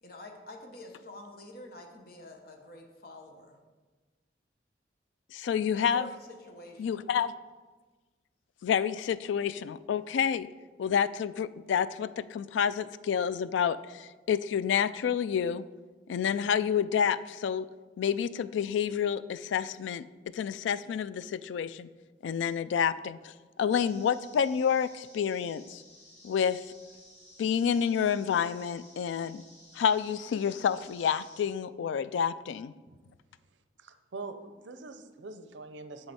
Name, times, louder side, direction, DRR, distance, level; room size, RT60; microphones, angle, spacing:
voice 1, 0.0-3.6 5.7-7.1, left 1 dB, 55° left, 2 dB, 1.0 m, -48 dB
voice 2, 5.3-6.1 6.8-7.3 8.6-10.5 10.8-15.7 16.1-17.7 18.0-20.1 20.3-21.9 22.2-23.3 23.6-25.8 26.2-26.6 27.4-29.4 29.8-32.7, left 7 dB, 80° left, 16 dB, 0.3 m, -29 dB
sound 1, 23.7-31.4, left 1 dB, 35° left, 2.2 m, -55 dB
voice 3, 33.8-36.1, right 3 dB, 80° right, 9 dB, 0.6 m, -44 dB
7.7 x 7.3 x 4.2 m, 1.3 s
head